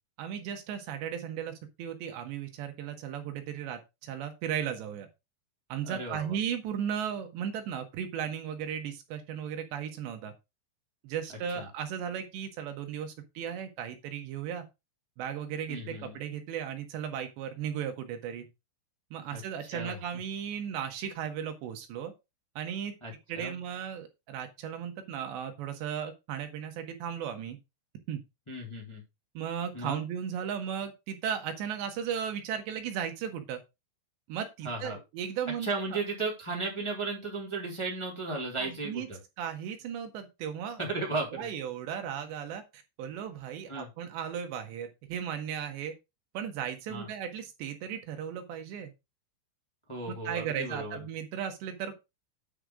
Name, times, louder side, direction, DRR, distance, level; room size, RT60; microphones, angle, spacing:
voice 1, 0.2-5.1 5.7-10.3 11.0-14.6 15.2-18.5 19.1-22.1 22.6-22.9 23.3-27.6 28.1-28.2 29.3-33.6 34.3-36.0 38.7-39.1 39.4-40.8 41.3-45.9 46.3-48.9 50.1-52.1, right 8 dB, 75° right, 6 dB, 3.3 m, -36 dB
voice 2, 5.8-6.4 11.5-11.7 15.7-16.2 19.3-19.4 19.7-20.0 23.0-23.6 28.5-29.0 29.7-30.0 34.6-35.0 35.6-39.2 40.8-41.5 43.7-43.9 46.9-47.1 49.9-51.0, right 3 dB, 10° left, -2 dB, 2.4 m, -35 dB
9.9 x 5.0 x 4.9 m, 0.25 s
omnidirectional pair, 5.4 m